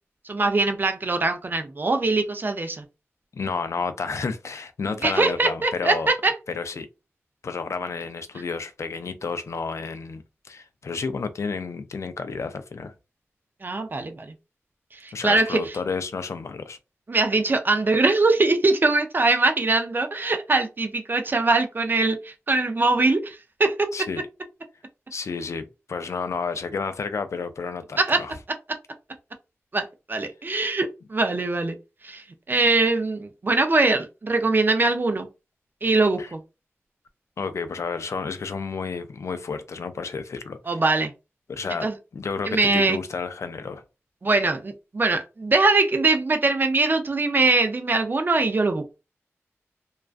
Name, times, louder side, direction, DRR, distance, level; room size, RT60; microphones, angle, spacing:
voice 1, 0.3-2.8 5.0-6.3 13.6-14.3 15.0-15.6 17.1-23.9 28.0-28.2 29.7-31.8 32.0-35.3 35.8-36.4 40.7-41.1 41.8-41.9 42.5-43.0 44.2-49.0, right 3 dB, 40° right, 0.5 m, -22 dB
voice 2, 3.3-6.1 6.5-6.9 7.4-12.9 15.1-16.8 23.9-24.2 25.1-28.3 36.2-36.3 37.4-40.8 41.5-41.9 42.1-43.8, left 5 dB, 75° left, 0.4 m, -31 dB
2.3 x 2.2 x 2.4 m
wide cardioid pair, 90°, 5 cm